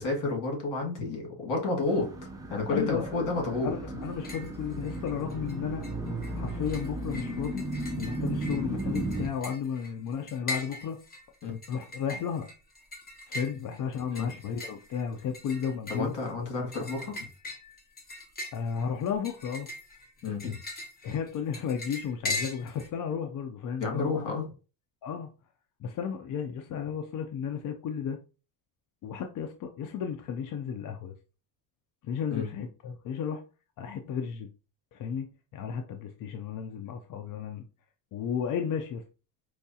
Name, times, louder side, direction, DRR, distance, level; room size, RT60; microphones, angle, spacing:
voice 1, 0.0-2.1 2.5-3.7 11.4-11.6 14.1-14.3 15.9-17.2 20.2-20.6 23.8-24.5 32.3-32.5, left 3 dB, 65° left, 1.9 m, -30 dB
sound 1, 1.9-9.3, right 2 dB, 10° right, 0.5 m, -35 dB
voice 2, 2.7-3.0 3.6-5.9 6.4-7.7 8.0-11.0 11.7-12.5 13.3-16.1 18.5-19.7 21.0-24.4 25.0-25.3 25.8-28.2 29.0-31.1 32.0-33.4 33.8-34.5 34.9-37.6 38.1-39.0, left 7 dB, 50° left, 0.5 m, -33 dB
sound 2, 4.0-4.5 4.8-5.5 5.8-22.9, left 2 dB, 20° left, 0.8 m, -40 dB
4.6 x 2.3 x 2.7 m
cardioid pair, 135°, 45 cm